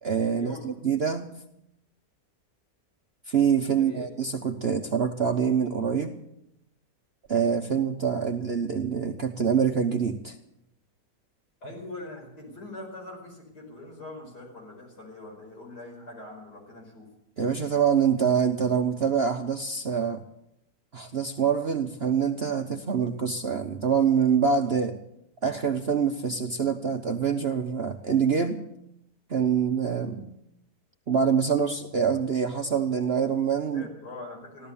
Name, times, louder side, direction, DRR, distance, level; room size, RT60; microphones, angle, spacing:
voice 1, 0.0-1.3 3.3-6.2 7.3-10.4 17.4-20.2 20.9-25.0 25.4-28.6 29.3-30.3 31.1-33.9, right 7 dB, 45° right, 6 dB, 0.9 m, -25 dB
voice 2, 3.7-4.1 11.6-17.1 33.7-34.7, left 2 dB, 70° left, -1 dB, 5.9 m, -42 dB
16.0 x 12.5 x 7.0 m, 0.82 s
omnidirectional pair, 1.8 m